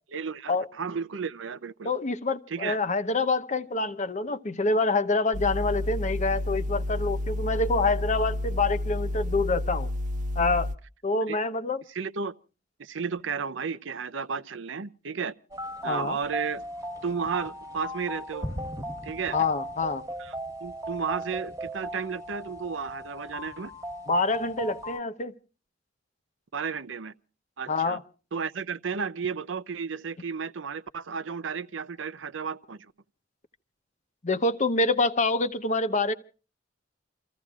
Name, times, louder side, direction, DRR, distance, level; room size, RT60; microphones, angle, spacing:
voice 1, 0.1-1.9 2.5-2.8 11.3-11.4 11.9-12.3 12.8-15.3 15.8-16.6 17.0-18.5 19.0-19.4 20.2-20.3 20.6-23.7 26.5-27.1 27.6-28.0 28.3-32.9, right 6 dB, 75° right, 0.6 m, -33 dB
voice 2, 1.8-9.9 10.4-10.7 11.0-11.8 15.9-16.2 19.3-20.0 24.1-25.3 27.7-28.0 34.2-36.1, left 3 dB, 40° left, 0.8 m, -26 dB
sound 1, 5.3-10.8, left 1 dB, 40° right, 0.7 m, -30 dB
sound 2, 15.5-25.0, equal, 15° right, 1.5 m, -37 dB
29.0 x 15.0 x 2.4 m
head